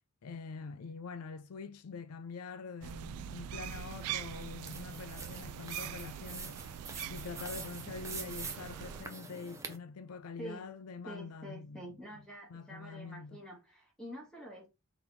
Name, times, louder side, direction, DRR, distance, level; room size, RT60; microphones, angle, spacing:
voice 1, 0.2-6.7 7.1-12.2 12.5-13.4, left 4 dB, 80° left, 0.5 m, -45 dB
sound 1, 2.8-9.0, right 10 dB, 85° right, 0.3 m, -43 dB
sound 2, 3.6-9.8, right 4 dB, 15° right, 0.6 m, -46 dB
voice 2, 11.0-14.7, equal, 5° left, 1.6 m, -47 dB
3.9 x 3.0 x 3.7 m
head